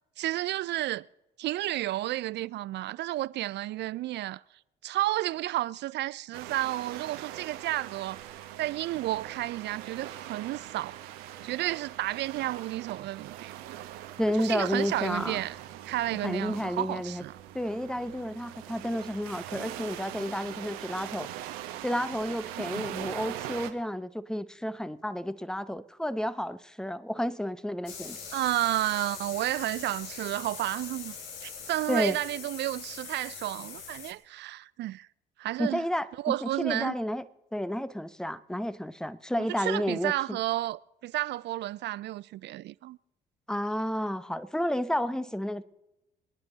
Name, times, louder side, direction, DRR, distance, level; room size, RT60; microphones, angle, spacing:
voice 1, 0.2-1.0 1.4-4.4 4.8-11.0 11.4-13.8 14.4-15.6 15.9-17.3 22.5-22.9 28.3-31.2 31.4-35.1 35.4-35.8 36.2-36.9 39.4-43.0, right 15 dB, 55° right, 0.4 m, -32 dB
sound 1, 6.3-23.7, right 12 dB, 75° right, 1.2 m, -42 dB
voice 2, 14.2-15.4 16.2-17.2 17.5-21.3 21.8-28.2 31.9-32.2 35.6-37.2 37.5-40.4 43.5-45.6, equal, 5° left, 0.8 m, -31 dB
sound 2, 27.9-34.1, left 6 dB, 80° left, 2.1 m, -42 dB
27.0 x 9.8 x 3.9 m
hypercardioid pair, 55°, 21 cm